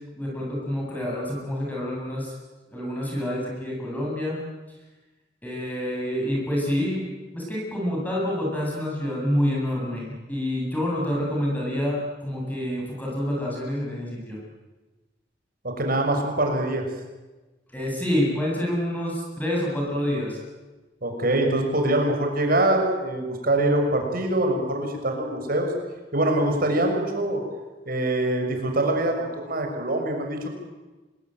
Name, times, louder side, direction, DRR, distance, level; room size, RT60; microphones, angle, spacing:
voice 1, 0.1-2.3 2.7-4.4 5.4-7.1 7.3-14.4 17.7-20.4, equal, 10° left, -4 dB, 7.8 m, -27 dB
voice 2, 15.6-16.8 21.0-25.7 26.1-27.4 27.9-30.5, right 1 dB, 55° right, 3 dB, 6.1 m, -24 dB
26.0 x 22.0 x 9.2 m, 1.2 s
head